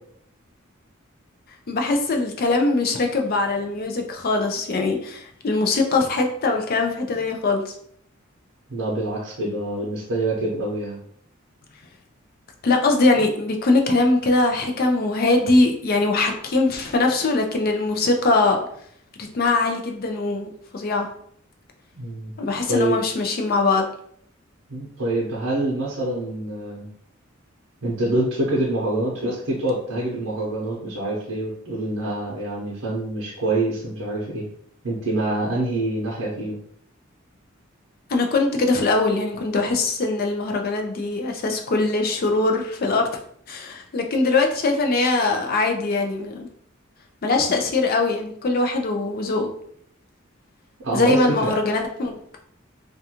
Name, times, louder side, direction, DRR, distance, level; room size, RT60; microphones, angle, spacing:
voice 1, 1.7-7.7 12.6-18.7 19.2-21.1 22.4-23.9 38.1-43.2 43.5-46.5 47.2-49.5 50.9-52.1, left 3 dB, 50° left, 3 dB, 0.4 m, -22 dB
voice 2, 8.7-11.0 21.9-22.3 22.7-23.0 24.7-26.9 27.8-34.4 34.8-36.6 50.8-51.5, right 2 dB, 75° right, -4 dB, 0.6 m, -26 dB
2.4 x 2.2 x 2.8 m, 0.65 s
head